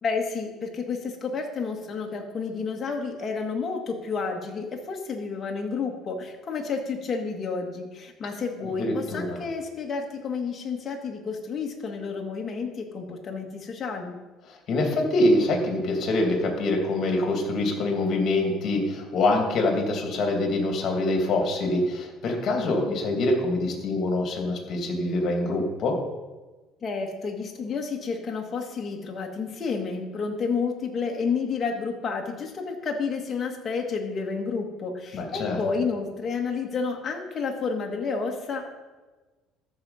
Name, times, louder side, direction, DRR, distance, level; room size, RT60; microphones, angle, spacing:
voice 1, 0.0-14.2 26.8-38.7, left 5 dB, 35° left, 1 dB, 1.8 m, -30 dB
voice 2, 8.6-9.4 14.5-26.0 35.1-35.6, left 2 dB, 50° left, 2 dB, 2.6 m, -25 dB
13.5 x 5.1 x 5.6 m, 1.2 s
cardioid pair, 120°, 0 cm